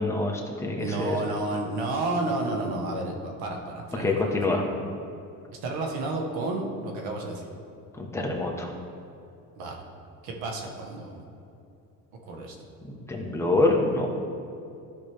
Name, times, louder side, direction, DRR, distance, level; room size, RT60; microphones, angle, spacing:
voice 1, 0.0-1.2 4.0-4.6 8.0-8.7 12.9-14.1, left 2 dB, 5° left, -1 dB, 1.3 m, -26 dB
voice 2, 0.8-4.1 4.5-4.6 5.6-7.5 9.6-9.8 10.2-11.2 12.3-12.6, right 2 dB, 80° right, 1 dB, 1.5 m, -31 dB
13.5 x 5.2 x 3.6 m, 2.6 s
cardioid pair, 110°, 36 cm